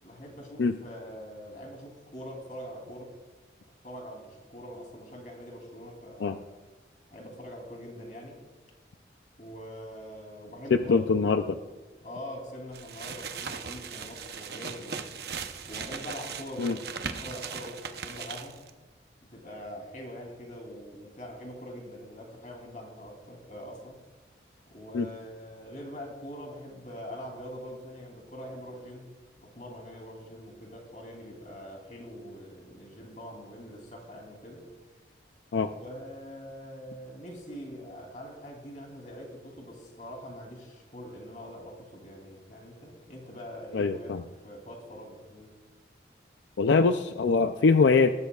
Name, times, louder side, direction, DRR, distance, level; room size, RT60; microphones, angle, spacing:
voice 1, 0.0-3.1 3.8-6.6 7.1-8.4 9.4-11.5 12.0-15.1 15.6-18.6 19.3-24.0 24.7-29.1 29.4-34.6 35.6-45.5, equal, 45° left, 1 dB, 3.1 m, -43 dB
voice 2, 10.7-11.6 16.6-16.8 24.9-25.1 35.5-35.7 43.7-44.2 46.6-48.1, left 4 dB, 80° left, 8 dB, 0.4 m, -23 dB
sound 1, 12.7-18.7, right 6 dB, 60° right, 0.8 m, -38 dB
19.0 x 13.0 x 2.4 m, 1.2 s
head